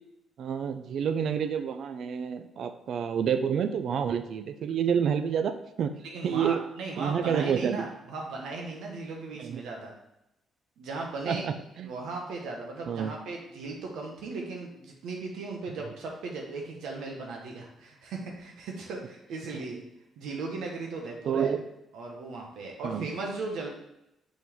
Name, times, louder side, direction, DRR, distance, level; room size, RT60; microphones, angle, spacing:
voice 1, 0.4-5.5 5.8-6.6 7.0-7.9 9.4-9.6 11.3-11.9 12.9-13.1 21.3-21.6 22.8-23.1, right 7 dB, 65° right, 10 dB, 0.5 m, -29 dB
voice 2, 6.0-9.9 10.8-11.4 11.8-19.8 20.2-21.5 21.9-23.7, right 3 dB, 80° right, 0 dB, 1.2 m, -37 dB
5.7 x 4.5 x 3.6 m, 0.87 s
cardioid pair, 90°, 0 cm